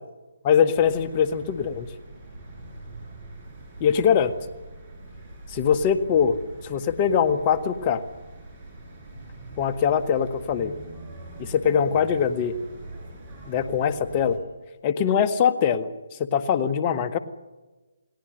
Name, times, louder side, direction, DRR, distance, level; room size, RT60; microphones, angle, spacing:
voice 1, 0.4-1.9 3.8-4.3 5.5-6.4 6.6-8.0 9.6-10.7 11.4-12.5 13.5-14.4 14.8-17.2, left 7 dB, 30° left, 10 dB, 1.6 m, -22 dB
sound 1, 0.7-14.4, right 2 dB, 30° right, 8.0 m, -43 dB
29.0 x 18.5 x 6.7 m, 1.2 s
figure-of-eight pair, 145°, 0 cm